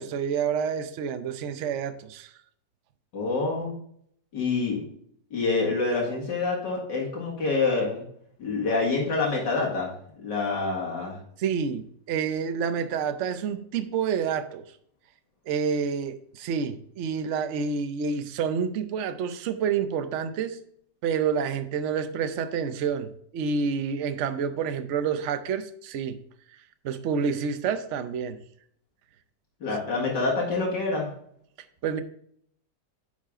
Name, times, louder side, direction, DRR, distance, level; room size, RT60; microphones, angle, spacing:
voice 1, 0.0-2.3 11.4-14.6 15.5-20.6 21.0-26.2 26.8-28.4 30.0-30.1 31.8-32.0, right 6 dB, 55° right, 9 dB, 0.9 m, -28 dB
voice 2, 3.1-3.7 4.3-4.8 5.3-8.0 8.4-9.9 10.2-11.2 29.6-31.1, left 3 dB, 90° left, -2 dB, 2.6 m, -26 dB
9.7 x 5.7 x 3.6 m, 0.66 s
omnidirectional pair, 1.8 m